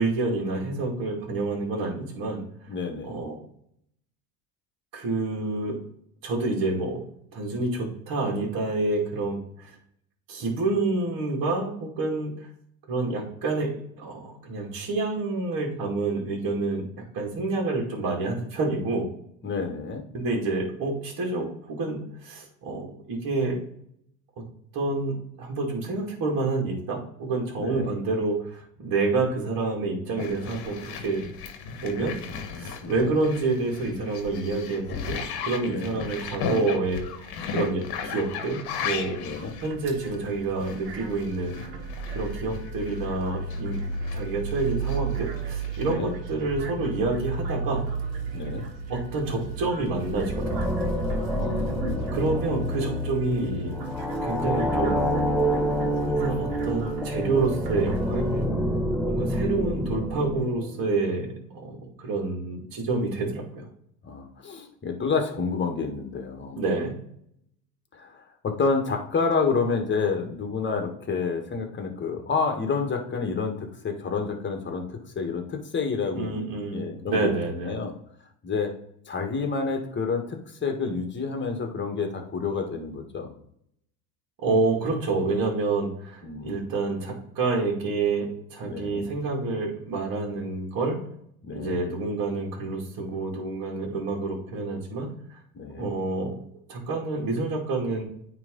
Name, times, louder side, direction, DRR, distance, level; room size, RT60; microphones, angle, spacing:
voice 1, 0.0-2.4 3.0-3.4 4.9-5.8 6.2-7.0 7.3-9.8 10.3-12.3 12.9-19.1 20.1-23.6 24.7-31.2 31.8-32.2 32.6-39.2 39.6-41.6 42.1-43.8 44.1-47.9 48.9-50.7 52.1-53.8 54.2-55.0 56.0-58.3 59.1-63.6 66.6-67.0 76.1-77.7 84.4-91.0 91.5-95.4 95.8-96.4 96.7-98.0, right 3 dB, 45° right, -2 dB, 2.3 m, -28 dB
voice 2, 2.7-3.2 19.4-20.0 27.6-27.9 32.8-33.1 35.7-36.0 39.2-39.5 45.8-46.1 48.3-48.6 51.4-52.1 64.0-66.6 67.9-77.3 77.6-77.9 78.4-78.7 79.1-83.3 86.2-86.7 88.6-89.1 91.4-91.8 95.5-95.9, left 4 dB, 20° left, 4 dB, 1.5 m, -29 dB
sound 1, 30.2-43.1 43.5-45.9, left 6 dB, 50° left, 1.3 m, -36 dB
sound 2, 39.2-58.5, right 3 dB, 90° right, 1.4 m, -35 dB
sound 3, 49.8-60.9, equal, ahead, 0.7 m, -28 dB
9.0 x 3.3 x 3.8 m, 0.70 s
hypercardioid pair, 90°, 49 cm